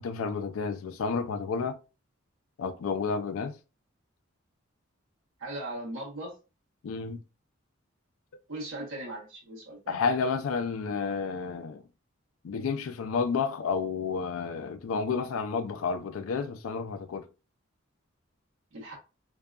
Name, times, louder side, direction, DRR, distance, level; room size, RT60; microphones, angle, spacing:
voice 1, 0.0-1.8 2.6-3.6 6.8-7.2 9.9-11.8 12.4-17.3, left 5 dB, 80° left, 0.4 m, -31 dB
voice 2, 5.4-6.3 8.5-10.0 18.7-18.9, right 1 dB, 80° right, 1.0 m, -38 dB
2.6 x 2.2 x 2.3 m
head